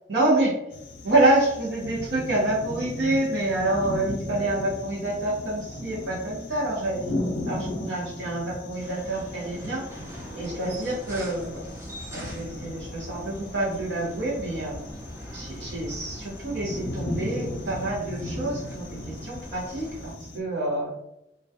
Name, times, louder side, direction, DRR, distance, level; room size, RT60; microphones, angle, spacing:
voice 1, 0.1-0.5 1.0-7.0 7.5-9.8 10.3-11.6 12.1-14.8 15.3-20.9, right 2 dB, 70° right, -6 dB, 0.7 m, -27 dB
sound 1, 0.7-20.4, left 1 dB, 90° left, 0.5 m, -37 dB
sound 2, 8.8-20.1, equal, 15° right, 0.4 m, -43 dB
2.3 x 2.2 x 2.6 m, 0.87 s
head